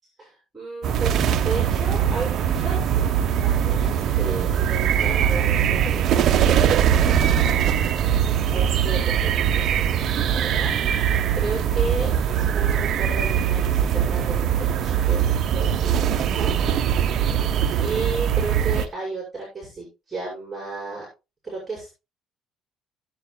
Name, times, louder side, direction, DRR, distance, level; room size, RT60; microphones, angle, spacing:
voice 1, 0.0-3.0 3.4-6.5 8.5-16.5 17.8-21.1 21.4-22.1, right 3 dB, 20° right, -4 dB, 6.0 m, -34 dB
sound 1, 0.8-18.9, right 9 dB, 55° right, 0.9 m, -21 dB
16.5 x 8.1 x 2.3 m, 0.27 s
cardioid pair, 110°, 0 cm